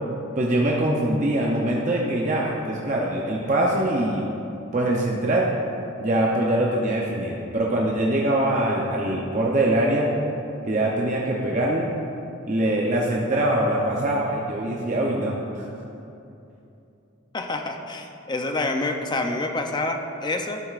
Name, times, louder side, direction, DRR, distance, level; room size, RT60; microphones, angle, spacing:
voice 1, 0.4-4.2 4.7-5.5 6.0-10.1 10.6-11.9 12.5-15.7, right 1 dB, 35° right, -3 dB, 0.6 m, -23 dB
voice 2, 17.3-20.6, left 2 dB, 20° left, 4 dB, 0.5 m, -27 dB
12.0 x 7.8 x 2.5 m, 2.8 s
head